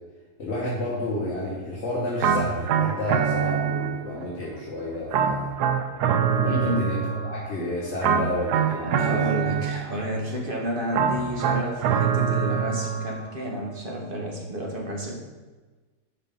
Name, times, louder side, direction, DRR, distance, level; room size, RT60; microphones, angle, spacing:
voice 1, 0.4-5.5 6.3-7.0 7.2-9.3, left 1 dB, 45° left, -6 dB, 1.6 m, -30 dB
sound 1, 2.2-4.3 5.1-7.5 8.0-10.1 10.9-13.3, right 7 dB, 85° right, 1.2 m, -25 dB
voice 2, 6.4-6.9 8.7-15.2, equal, 35° right, -1 dB, 1.5 m, -31 dB
11.0 x 5.5 x 4.0 m, 1.3 s
omnidirectional pair, 1.7 m